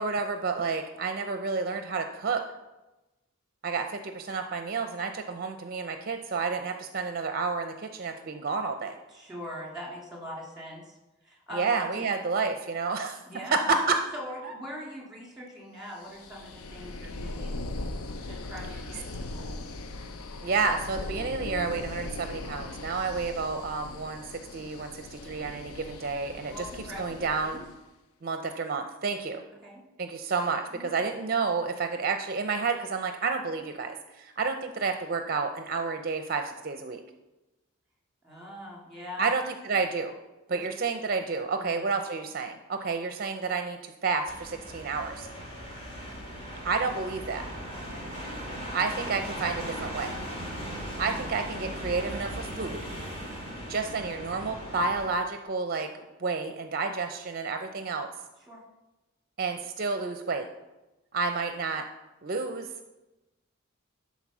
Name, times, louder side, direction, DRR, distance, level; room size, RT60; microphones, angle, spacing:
voice 1, 0.0-2.4 3.6-9.0 11.5-13.2 13.5-14.0 14.4-14.5 20.4-26.6 27.0-27.6 28.2-29.4 30.0-37.0 39.2-40.1 40.5-45.3 46.6-47.5 48.7-50.1 51.0-52.8 53.7-55.9 56.2-58.1 59.4-60.5 61.1-61.9 62.2-62.7, right 4 dB, 45° right, 7 dB, 0.5 m, -30 dB
voice 2, 9.1-11.0 11.2-12.1 13.3-13.7 14.1-17.7 18.2-19.6 26.5-27.7 29.6-29.8 30.7-30.9 38.2-39.3 40.5-40.6 41.6-41.9 47.7-48.1 58.5-58.6, equal, ahead, -2 dB, 2.1 m, -42 dB
sound 1, 16.0-27.8, left 2 dB, 85° left, 0.7 m, -39 dB
sound 2, 44.3-55.1, equal, 25° left, 2.1 m, -38 dB
11.0 x 4.1 x 6.0 m, 1.0 s
head